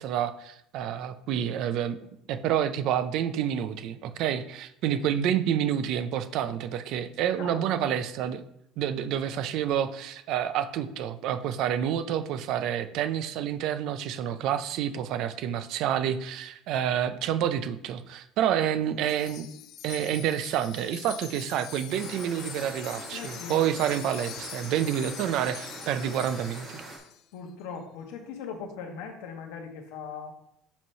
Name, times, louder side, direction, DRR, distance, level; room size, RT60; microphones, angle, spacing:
voice 1, 0.0-2.0 2.3-8.4 8.8-19.5 19.8-26.8, right 9 dB, 55° right, 11 dB, 0.5 m, -28 dB
voice 2, 7.4-7.9 14.3-14.4 23.1-23.6 27.3-30.3, left 6 dB, 80° left, 3 dB, 1.3 m, -40 dB
Wind chime, 19.0-27.2, left 12 dB, 50° left, 0.3 m, -44 dB
sound 1, 21.9-27.0, right 3 dB, 20° right, 1.5 m, -43 dB
7.1 x 3.1 x 5.5 m, 0.79 s
cardioid pair, 150°, 0 cm